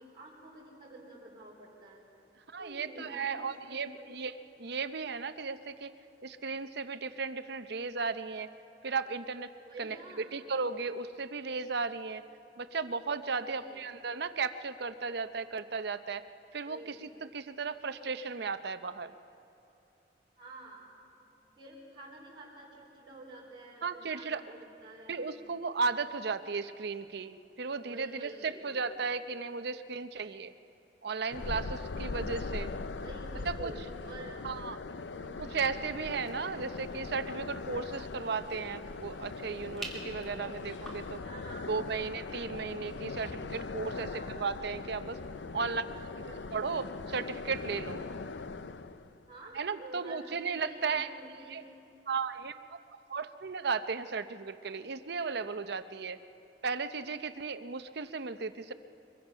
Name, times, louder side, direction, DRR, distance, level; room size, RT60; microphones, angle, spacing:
voice 1, 0.0-2.0 2.6-4.1 9.6-10.3 13.4-13.8 16.7-17.0 20.4-21.3 21.6-25.3 27.8-28.7 33.0-34.4 35.0-35.4 40.2-40.6 41.2-42.0 43.9-44.4 46.2-46.5 49.3-51.6, right 1 dB, 30° right, -5 dB, 3.9 m, -49 dB
voice 2, 2.5-4.3 4.6-5.9 6.2-8.5 8.8-9.5 9.8-10.0 10.3-12.2 12.6-16.2 16.5-19.1 23.8-24.4 25.1-30.5 31.0-32.7 33.5-33.7 34.4-34.8 35.4-41.2 41.7-44.1 44.3-45.2 45.5-45.9 46.2-48.0 49.5-51.1 51.5-51.6 52.1-52.8 53.1-56.2 56.6-58.7, right 4 dB, 65° right, 11 dB, 0.7 m, -35 dB
sound 1, 31.3-49.2, left 3 dB, 80° left, 0.6 m, -40 dB
sound 2, 35.7-41.1, right 1 dB, ahead, 2.6 m, -50 dB
23.5 x 22.0 x 5.6 m, 2.9 s
head